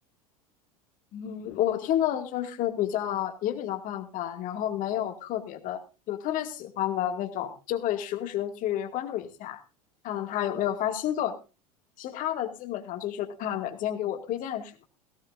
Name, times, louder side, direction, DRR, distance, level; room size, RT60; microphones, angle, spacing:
voice 1, 1.1-5.8 6.1-9.6 10.0-11.4 12.0-14.8, left 11 dB, 45° left, 6 dB, 2.2 m, -30 dB
17.0 x 17.0 x 2.6 m, 0.30 s
figure-of-eight pair, 80°, 19 cm